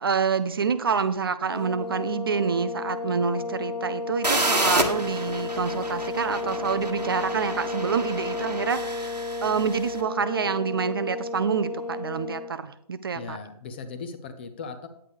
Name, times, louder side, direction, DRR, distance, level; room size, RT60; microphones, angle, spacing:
voice 1, 0.0-9.2 9.4-13.4, right 6 dB, 35° right, 12 dB, 0.5 m, -27 dB
sound 1, 1.5-12.5, left 3 dB, 80° left, 0.7 m, -33 dB
sound 2, 4.2-9.9, right 1 dB, 90° right, 1.5 m, -30 dB
voice 2, 13.1-14.9, left 5 dB, 15° left, 8 dB, 0.5 m, -38 dB
9.4 x 8.7 x 3.4 m, 0.69 s
figure-of-eight pair, 140°, 21 cm